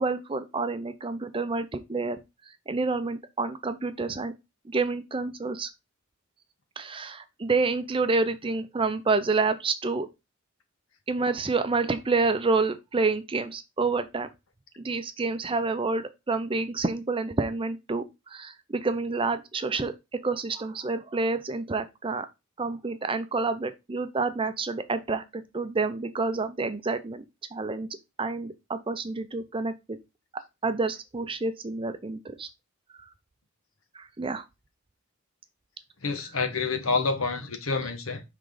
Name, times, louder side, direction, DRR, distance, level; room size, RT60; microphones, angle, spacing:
voice 1, 0.0-2.2 2.7-4.3 4.7-5.7 6.8-10.1 11.1-14.3 14.8-18.0 18.3-22.3 22.6-27.2 27.5-27.9 28.2-30.0 30.6-32.5 33.9-34.4, right 3 dB, 25° right, 0.6 m, -28 dB
voice 2, 36.0-38.2, left 4 dB, 75° left, 1.2 m, -28 dB
5.9 x 3.7 x 5.0 m
head